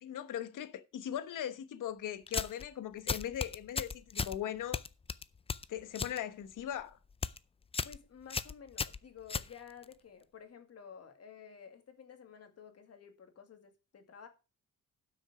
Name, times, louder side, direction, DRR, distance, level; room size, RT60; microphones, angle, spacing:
voice 1, 0.0-4.8 5.7-7.0, left 10 dB, 70° left, 1.2 m, -39 dB
sound 1, 2.3-2.7 3.1-4.4 4.7-6.2 6.5-6.8 7.1-7.4 7.7-8.0 8.3-9.9, left 5 dB, 20° left, 0.4 m, -36 dB
voice 2, 7.8-14.3, left 7 dB, 50° left, 2.2 m, -53 dB
12.0 x 6.4 x 5.0 m
cardioid pair, 135°, 33 cm